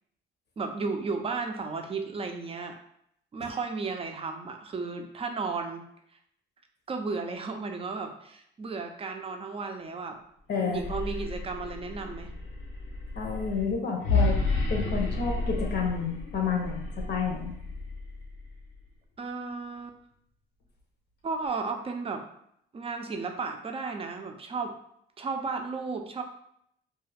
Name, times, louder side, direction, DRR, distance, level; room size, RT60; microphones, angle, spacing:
voice 1, 0.6-2.8 3.3-5.8 6.9-10.2 10.7-12.3 19.2-20.0 21.2-22.2 22.7-24.7 25.2-26.2, right 4 dB, 30° right, 5 dB, 0.4 m, -34 dB
voice 2, 10.5-10.8 13.2-14.4 14.7-17.5, left 5 dB, 60° left, 1 dB, 0.7 m, -30 dB
sound 1, 10.7-18.7, left 3 dB, 90° left, 0.8 m, -31 dB
2.4 x 2.3 x 3.2 m, 0.72 s
cardioid pair, 90°, 20 cm